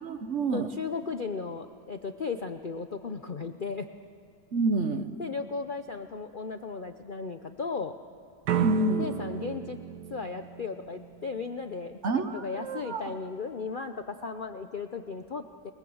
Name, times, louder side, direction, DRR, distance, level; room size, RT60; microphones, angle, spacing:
voice 1, 0.0-0.7 4.5-5.1 8.6-9.1 12.0-13.1, right 3 dB, 50° right, 9 dB, 1.2 m, -28 dB
voice 2, 0.5-3.9 5.2-8.0 9.0-9.8 10.1-15.7, left 4 dB, 50° left, 8 dB, 0.6 m, -36 dB
sound 1, 8.5-11.4, right 9 dB, 65° right, 1.5 m, -32 dB
27.5 x 21.5 x 8.0 m, 2.4 s
omnidirectional pair, 1.8 m